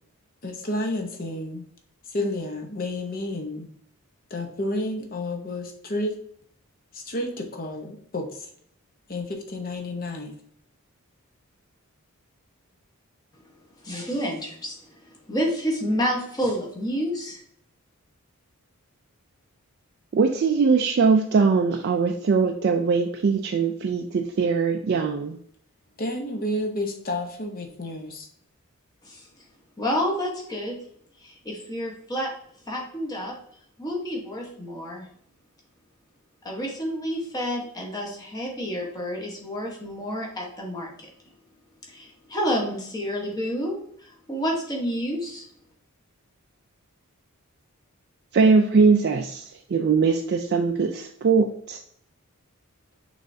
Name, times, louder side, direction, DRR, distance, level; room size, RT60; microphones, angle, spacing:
voice 1, 0.4-1.7 2.1-3.7 4.3-6.2 6.9-8.5 9.1-10.3 26.0-28.3, left 1 dB, 40° left, 3 dB, 0.8 m, -30 dB
voice 2, 13.8-14.8 15.0-17.4 29.0-29.4 29.8-30.8 31.2-32.3 32.7-33.3 33.8-35.1 36.4-41.1 41.9-45.5, equal, 15° left, -1 dB, 1.1 m, -29 dB
voice 3, 20.1-25.4 48.3-51.8, right 5 dB, 45° right, 3 dB, 0.3 m, -21 dB
6.1 x 3.3 x 2.7 m, 0.65 s
head